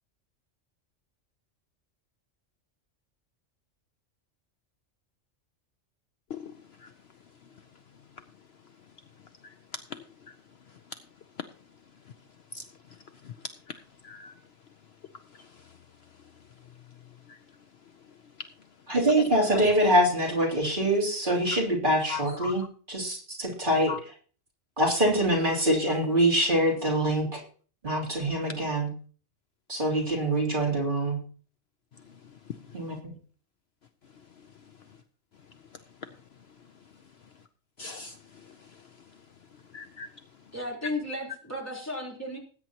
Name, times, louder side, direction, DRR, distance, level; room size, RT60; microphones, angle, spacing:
voice 1, 6.3-6.9 7.4-7.7 8.1-8.2 8.8-8.9 9.4-10.4 10.7-11.0 11.4-11.5 12.0-12.1 12.5-14.4 15.1-17.6 18.0-18.5 19.2-19.6 21.5-21.6 22.1-22.6 23.9-24.0 31.9-33.0 34.1-35.0 35.5-36.1 36.5-36.9 37.2-37.3 37.8-40.5, left 5 dB, 60° left, 0.9 m, -43 dB
voice 2, 18.9-22.6 22.9-23.9 24.8-27.4 27.8-28.9 29.7-31.2 32.7-33.1, right 1 dB, 40° right, 3.3 m, -24 dB
voice 3, 40.5-42.4, left 1 dB, 10° left, 3.6 m, -34 dB
19.5 x 9.2 x 2.9 m
omnidirectional pair, 1.3 m